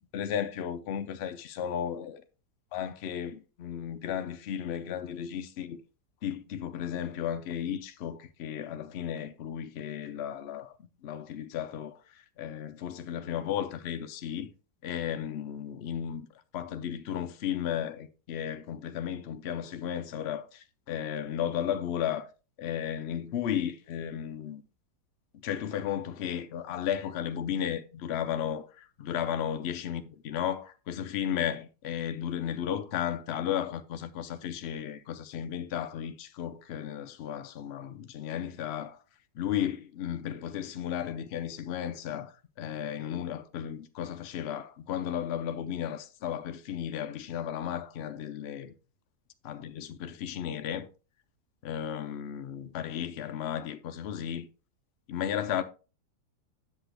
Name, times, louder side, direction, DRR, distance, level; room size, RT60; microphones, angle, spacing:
voice 1, 0.1-2.2 2.7-5.8 6.2-10.8 11.0-14.5 14.8-16.3 16.5-22.3 22.6-24.6 25.3-39.0 39.3-48.7 49.4-50.9 51.6-54.5 55.1-55.6, left 9 dB, 75° left, 0.6 m, -34 dB
8.0 x 7.0 x 3.3 m
omnidirectional pair, 1.8 m